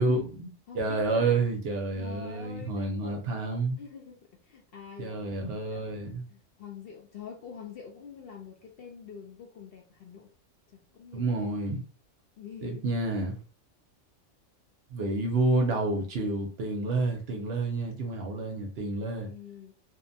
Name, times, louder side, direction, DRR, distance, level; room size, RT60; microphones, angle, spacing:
voice 1, 0.0-3.8 5.0-6.3 11.1-11.8 12.6-13.4 14.9-19.3, right 2 dB, 60° right, 0.8 m, -29 dB
voice 2, 0.7-1.4 2.0-3.2 3.8-5.3 5.7-10.3 10.7-11.5 12.4-12.9 19.2-19.7, left 6 dB, 60° left, 0.7 m, -46 dB
2.6 x 2.1 x 2.6 m
omnidirectional pair, 1.3 m